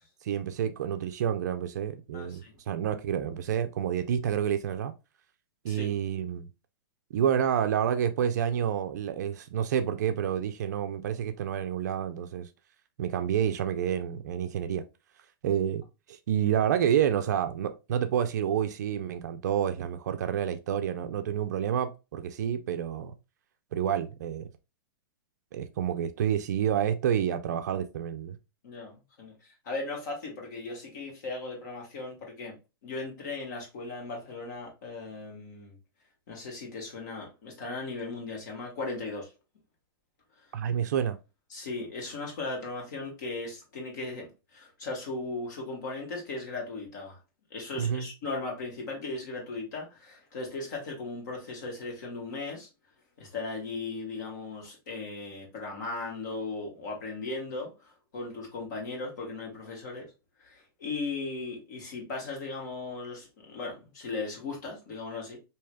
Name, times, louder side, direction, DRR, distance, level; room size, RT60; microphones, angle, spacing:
voice 1, 0.2-4.9 5.6-6.5 7.1-12.5 13.0-14.8 15.4-15.8 16.1-23.1 23.7-24.5 25.5-28.4 40.5-41.2 47.8-48.1, right 9 dB, 45° right, 0.4 m, -29 dB
voice 2, 2.1-2.6 5.7-5.9 28.6-32.5 32.8-35.8 36.3-39.3 41.5-47.2 47.5-52.7 53.2-60.1 60.4-65.4, left 3 dB, 50° left, 1.6 m, -37 dB
4.7 x 2.8 x 2.2 m
hypercardioid pair, 170°, 12 cm